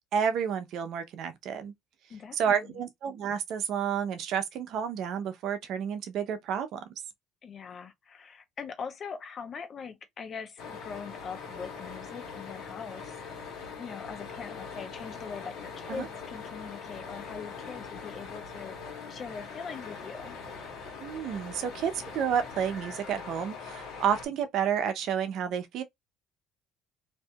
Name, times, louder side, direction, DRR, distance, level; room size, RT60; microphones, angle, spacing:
voice 1, 0.1-1.7 2.3-6.8 15.9-16.1 21.0-25.8, right 8 dB, 65° right, 0.6 m, -30 dB
voice 2, 2.1-2.8 7.4-13.2 13.8-18.7 19.1-20.4, left 6 dB, 45° left, 0.8 m, -42 dB
sound 1, 10.6-24.3, left 5 dB, 70° left, 1.3 m, -42 dB
2.7 x 2.6 x 2.2 m
supercardioid pair, 95°, 0 cm